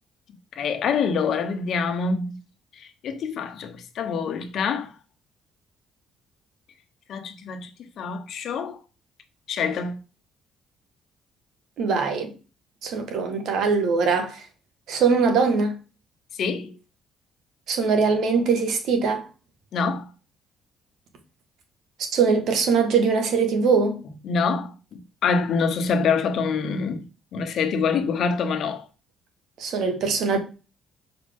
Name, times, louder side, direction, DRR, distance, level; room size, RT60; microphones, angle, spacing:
voice 1, 0.6-2.4 2.8-4.9 7.1-8.8 9.5-10.0 16.3-16.7 19.7-20.1 24.2-28.9, left 5 dB, 65° left, 1.1 m, -26 dB
voice 2, 11.8-12.3 12.8-14.4 14.9-15.7 17.7-19.3 22.1-24.0 29.6-30.4, right 5 dB, 70° right, 1.7 m, -22 dB
6.3 x 4.9 x 3.7 m
cardioid pair, 100°, 0 cm